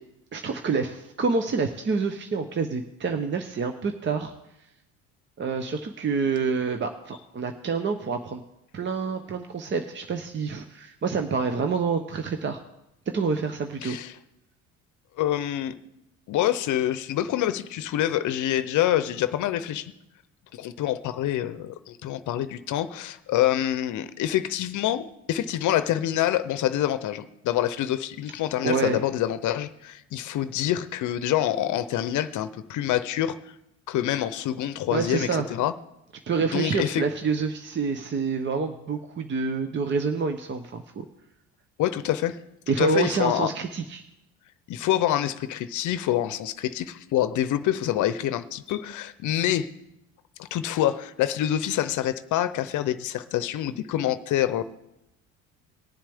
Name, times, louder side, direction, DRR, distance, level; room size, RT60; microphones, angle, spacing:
voice 1, 0.3-4.3 5.4-8.4 8.7-12.6 13.1-14.0 28.6-29.0 34.9-35.5 36.3-40.8 42.7-44.0, right 5 dB, 35° right, 6 dB, 0.8 m, -27 dB
voice 2, 13.8-14.2 15.2-15.7 16.3-19.9 20.5-33.4 33.9-35.7 36.5-37.0 41.8-42.4 42.8-43.5 44.7-49.7 50.4-54.6, left 12 dB, 60° left, 13 dB, 0.7 m, -26 dB
19.5 x 7.3 x 3.6 m, 0.87 s
supercardioid pair, 90°, 34 cm